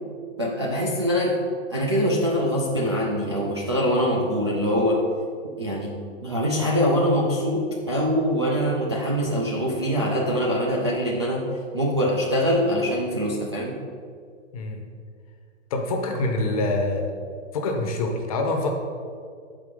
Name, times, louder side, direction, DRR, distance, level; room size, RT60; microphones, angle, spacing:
voice 1, 0.4-1.3 1.7-5.0 5.6-5.9 6.2-11.4 11.7-13.7, equal, 25° right, -5 dB, 0.4 m, -23 dB
voice 2, 15.7-17.1 17.5-18.7, left 2 dB, 30° left, 2 dB, 0.8 m, -25 dB
6.8 x 4.9 x 5.3 m, 2.2 s
hypercardioid pair, 165°, 39 cm